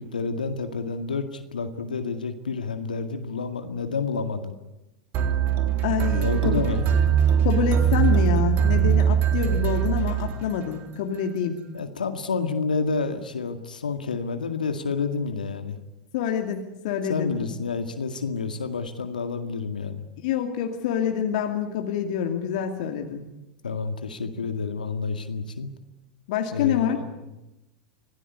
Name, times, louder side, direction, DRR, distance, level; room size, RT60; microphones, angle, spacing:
voice 1, 0.0-4.6 6.2-6.8 11.7-15.8 17.1-20.0 23.6-25.7 26.5-27.0, left 4 dB, 85° left, 7 dB, 2.0 m, -29 dB
sound 1, 5.1-10.8, right 9 dB, 45° right, 3.6 m, -22 dB
voice 2, 5.8-6.6 7.4-11.6 16.1-17.3 20.2-23.3 26.3-27.0, left 8 dB, 60° left, 4 dB, 2.5 m, -26 dB
26.0 x 17.5 x 9.7 m, 0.97 s
hypercardioid pair, 95°, 4 cm